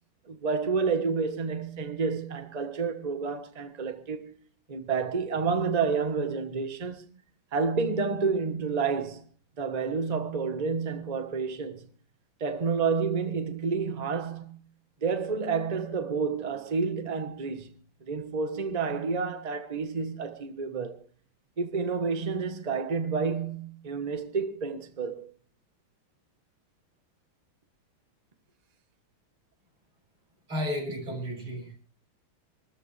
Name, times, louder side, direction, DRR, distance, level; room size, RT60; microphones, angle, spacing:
voice 1, 0.3-4.3 4.7-7.0 7.5-9.2 9.6-11.8 12.4-14.6 15.0-17.7 18.1-20.9 21.6-25.2, right 5 dB, 25° right, 1.1 m, -29 dB
voice 2, 30.5-31.7, left 1 dB, 90° right, 8.2 m, -33 dB
25.5 x 13.5 x 3.4 m
omnidirectional pair, 2.3 m